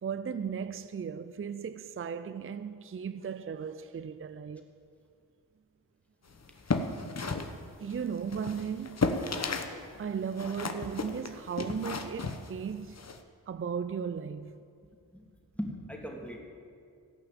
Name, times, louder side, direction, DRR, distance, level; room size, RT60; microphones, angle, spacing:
voice 1, 0.0-4.7 7.8-9.0 10.0-13.0 13.5-14.6, right 7 dB, 35° right, 0.5 m, -36 dB
sound 1, 6.4-9.8 10.0-13.2, left 3 dB, 40° left, 1.1 m, -34 dB
voice 2, 15.1-16.4, equal, 5° left, 2.8 m, -40 dB
15.5 x 5.6 x 8.9 m
cardioid pair, 40°, 39 cm